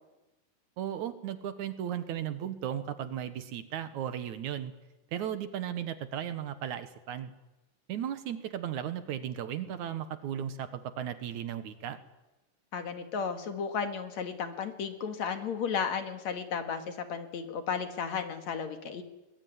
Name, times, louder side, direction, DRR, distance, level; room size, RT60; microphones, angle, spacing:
voice 1, 0.8-4.7 5.1-7.3 7.9-12.0, right 10 dB, 65° right, 11 dB, 2.5 m, -36 dB
voice 2, 12.7-19.0, left 6 dB, 60° left, 8 dB, 3.0 m, -34 dB
23.5 x 21.0 x 9.5 m, 1.0 s
omnidirectional pair, 3.8 m